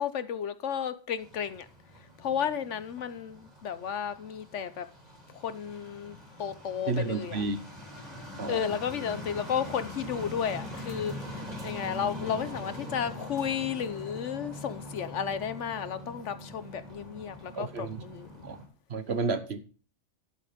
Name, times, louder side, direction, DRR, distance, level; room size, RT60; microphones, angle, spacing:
voice 1, 0.0-1.7 2.2-4.9 5.3-7.4 8.5-18.3, left 8 dB, 65° left, 1.0 m, -33 dB
sound 1, 1.2-18.7, left 1 dB, 30° right, 3.7 m, -43 dB
voice 2, 6.9-7.6 8.4-8.6 17.5-18.0 18.4-18.6 18.9-19.6, right 4 dB, 50° right, 1.2 m, -31 dB
11.5 x 7.8 x 5.1 m
omnidirectional pair, 1.4 m